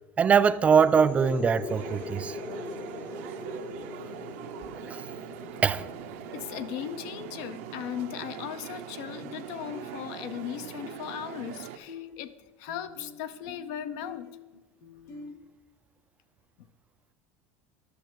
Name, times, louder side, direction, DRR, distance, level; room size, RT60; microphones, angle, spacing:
voice 1, 0.2-2.4 4.9-5.0 5.6-5.9, right 6 dB, 20° right, 0.3 m, -22 dB
sound 1, 0.6-8.1, left 3 dB, 25° left, 0.7 m, -41 dB
sound 2, 1.7-11.8, right 9 dB, 80° right, 0.7 m, -41 dB
voice 2, 6.3-14.4 16.6-16.7, left 10 dB, 65° left, 0.6 m, -38 dB
sound 3, 7.6-7.8 9.2-9.5 9.7-11.6 11.9-15.4, left 4 dB, 40° left, 1.1 m, -47 dB
11.0 x 6.3 x 4.6 m
supercardioid pair, 140°, 7 cm